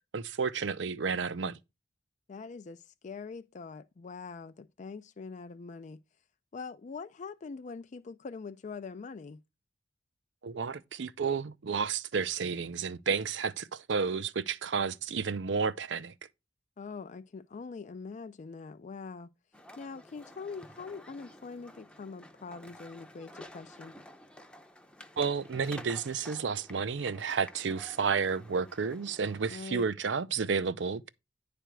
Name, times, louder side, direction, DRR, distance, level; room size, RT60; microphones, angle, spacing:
voice 1, 0.1-1.6 10.4-16.1 25.2-31.1, right 5 dB, 70° right, 0.5 m, -31 dB
voice 2, 2.3-6.0 6.5-9.4 16.8-19.3 19.8-24.0 29.5-29.9, left 4 dB, 40° left, 0.4 m, -43 dB
sound 1, 19.5-29.5, equal, 5° left, 0.6 m, -51 dB
10.0 x 3.4 x 6.0 m
head